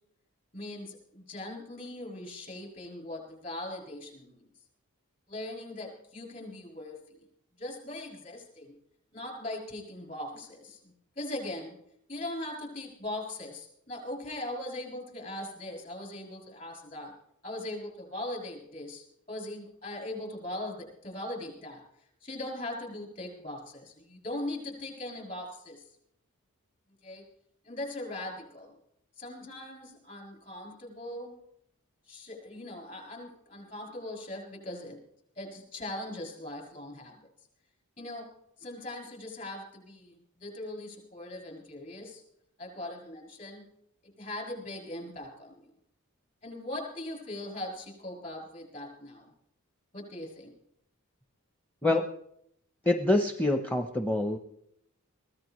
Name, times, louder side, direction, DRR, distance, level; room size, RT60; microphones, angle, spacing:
voice 1, 0.5-4.5 5.3-7.2 7.6-8.7 9.1-11.7 12.1-17.1 17.4-21.8 22.2-25.8 27.0-27.2 27.6-28.7 29.2-31.3 32.1-35.0 35.4-37.2 38.0-38.3 38.6-42.2 42.6-43.7 44.0-45.7 46.4-49.3 49.9-50.5, left 1 dB, 35° left, 0 dB, 6.9 m, -40 dB
voice 2, 52.8-54.4, left 2 dB, 5° left, 6 dB, 0.7 m, -26 dB
23.0 x 16.5 x 3.1 m, 0.73 s
head